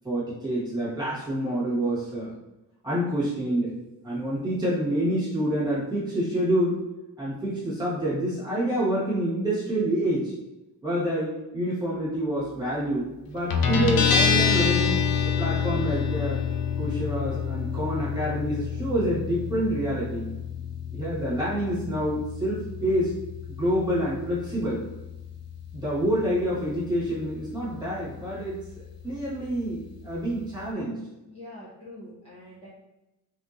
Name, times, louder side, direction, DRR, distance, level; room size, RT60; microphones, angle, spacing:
voice 1, 0.0-2.3 2.8-3.8 4.0-6.8 7.2-10.3 10.8-16.4 16.8-20.3 20.9-23.2 23.5-24.8 25.7-31.0, right 1 dB, 10° right, -9 dB, 1.3 m, -27 dB
Guitar, 13.5-30.7, left 7 dB, 70° left, 0.5 m, -29 dB
voice 2, 31.2-32.7, left 1 dB, 15° left, -10 dB, 0.6 m, -44 dB
3.6 x 2.7 x 2.5 m, 0.97 s
wide cardioid pair, 180°, 36 cm